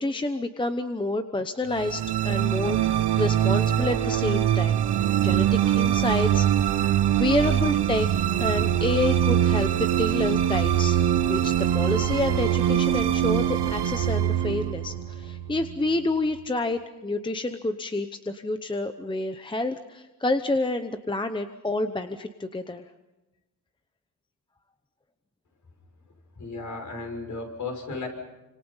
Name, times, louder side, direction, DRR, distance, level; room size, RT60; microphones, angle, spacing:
voice 1, 0.0-4.8 5.2-6.6 7.2-8.1 8.4-22.8, left 2 dB, 10° left, 8 dB, 0.9 m, -28 dB
sound 1, 1.7-16.1, right 11 dB, 85° right, 1.2 m, -23 dB
voice 2, 26.4-28.1, left 3 dB, 50° left, 3 dB, 6.2 m, -34 dB
29.0 x 26.5 x 5.7 m, 1.0 s
wide cardioid pair, 140°, 39 cm